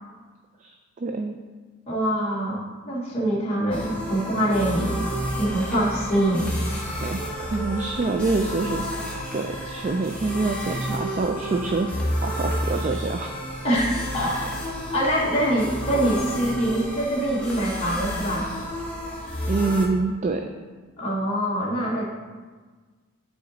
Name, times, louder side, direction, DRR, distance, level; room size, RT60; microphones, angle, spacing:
voice 1, 0.6-1.3 7.0-8.8 9.3-11.9 12.2-13.3 19.5-20.5, right 3 dB, 35° right, 5 dB, 0.3 m, -26 dB
voice 2, 1.9-2.6 2.8-5.0 5.4-6.5 13.6-14.4 14.9-18.5 21.0-22.1, right 1 dB, 30° left, -6 dB, 1.1 m, -24 dB
sound 1, 3.7-19.9, equal, 5° left, 1.2 m, -31 dB
9.5 x 3.9 x 3.9 m, 1.4 s
head